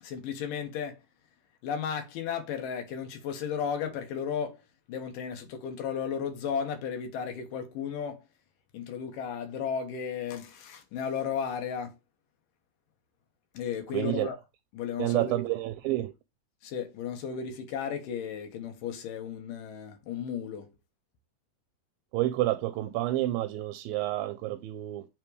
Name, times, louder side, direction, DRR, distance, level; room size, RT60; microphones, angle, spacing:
voice 1, 0.0-1.0 1.6-4.6 4.9-8.2 8.7-11.9 13.5-14.4 14.7-15.4 16.6-20.7, left 7 dB, 70° left, 2.7 m, -34 dB
voice 2, 13.9-14.3 15.0-16.1 22.1-25.1, right 15 dB, 80° right, 2.2 m, -29 dB
8.4 x 3.7 x 3.1 m
omnidirectional pair, 4.3 m